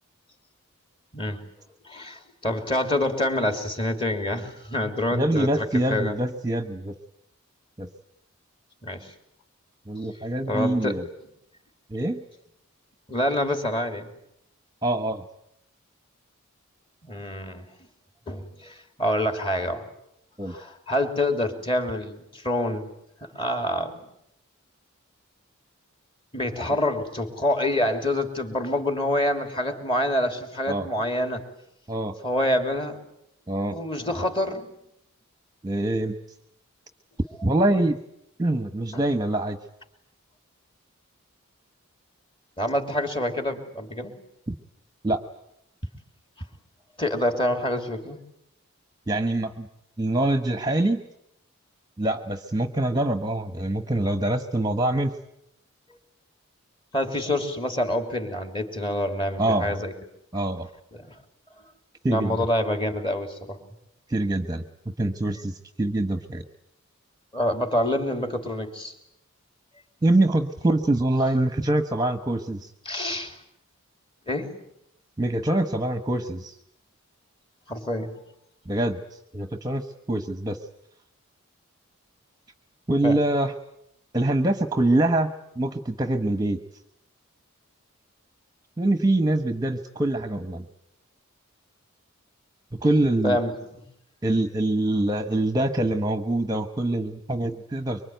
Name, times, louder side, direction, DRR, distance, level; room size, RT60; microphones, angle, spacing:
voice 1, 1.1-1.4 1.8-6.2 8.8-9.1 10.5-11.0 13.1-14.1 17.0-17.6 18.3-19.9 20.5-22.9 23.3-24.0 26.3-31.4 32.2-33.0 33.7-34.7 38.9-39.0 42.6-44.1 47.0-48.2 56.9-59.9 60.9-61.1 62.1-63.6 67.3-68.9 72.8-73.3 74.3-74.5 77.7-78.1 83.0-83.2 93.2-93.8, left 1 dB, 25° left, 6 dB, 3.1 m, -27 dB
voice 2, 5.1-7.0 7.8-7.9 9.9-11.1 11.9-12.2 14.8-15.2 20.4-20.5 30.7-30.9 31.9-32.1 33.5-33.7 35.6-36.1 37.4-38.0 38.4-39.6 44.5-44.6 45.0-45.2 49.1-49.7 50.0-51.0 52.0-55.2 59.4-59.8 60.3-60.7 62.0-62.4 64.1-64.6 65.0-66.4 70.0-72.7 75.2-76.6 78.7-80.6 82.9-83.5 84.1-86.6 88.8-90.7 92.8-93.4 94.2-98.0, right 1 dB, 15° right, 8 dB, 1.0 m, -24 dB
25.0 x 24.0 x 9.2 m, 0.78 s
head